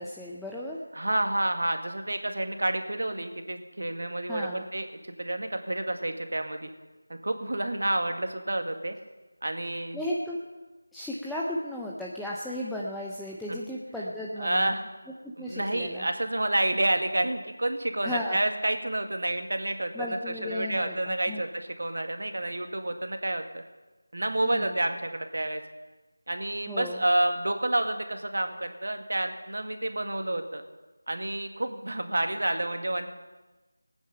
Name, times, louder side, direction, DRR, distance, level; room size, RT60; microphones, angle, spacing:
voice 1, 0.0-0.8 4.3-4.7 9.9-10.4 10.9-14.8 15.2-16.1 18.0-18.4 19.9-21.4 24.4-24.7 26.7-27.0, left 1 dB, ahead, -5 dB, 0.6 m, -35 dB
voice 2, 0.9-6.7 7.1-9.0 9.4-10.0 13.5-13.6 14.4-14.8 15.4-23.6 24.1-25.6 26.3-30.6 31.1-33.1, right 1 dB, 70° right, 6 dB, 1.9 m, -29 dB
19.5 x 9.3 x 5.7 m, 1.2 s
figure-of-eight pair, 170°, 0 cm